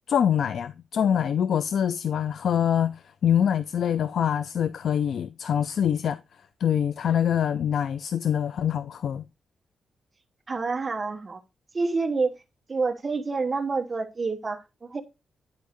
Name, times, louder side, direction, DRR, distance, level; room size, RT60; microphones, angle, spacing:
voice 1, 0.1-6.2 6.6-9.3, left 9 dB, 65° left, 0.4 m, -25 dB
voice 2, 10.5-11.4 11.7-12.4 12.7-15.0, right 4 dB, 25° right, 1.1 m, -28 dB
10.5 x 5.3 x 3.0 m
wide cardioid pair, 170°, 0 cm